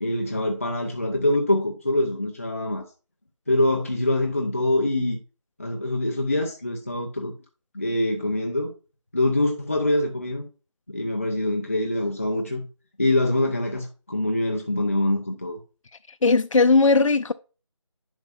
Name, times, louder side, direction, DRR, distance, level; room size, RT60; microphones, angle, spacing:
voice 1, 0.0-2.8 3.5-5.2 5.6-7.3 7.7-8.7 9.1-10.5 10.9-12.7 13.0-15.6, left 1 dB, 25° left, 0.6 m, -24 dB
voice 2, 16.2-17.3, left 3 dB, 80° left, 0.5 m, -18 dB
10.5 x 5.4 x 2.5 m
figure-of-eight pair, 170°, 16 cm